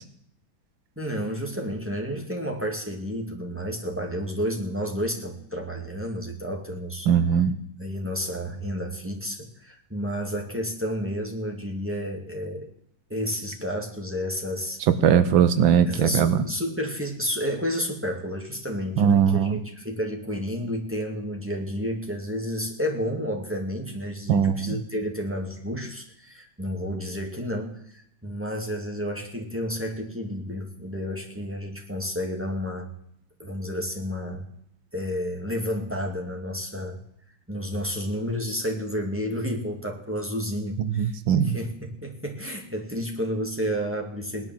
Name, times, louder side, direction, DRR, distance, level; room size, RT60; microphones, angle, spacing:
voice 1, 1.0-7.1 7.8-12.7 13.1-14.8 15.9-32.9 33.4-34.4 34.9-37.0 37.5-41.1 41.4-44.5, equal, 5° right, 1 dB, 2.2 m, -31 dB
voice 2, 7.1-7.6 14.9-16.4 19.0-19.6 24.3-24.8 40.8-41.6, right 8 dB, 90° right, 13 dB, 1.7 m, -20 dB
18.5 x 10.0 x 7.6 m, 0.72 s
omnidirectional pair, 2.1 m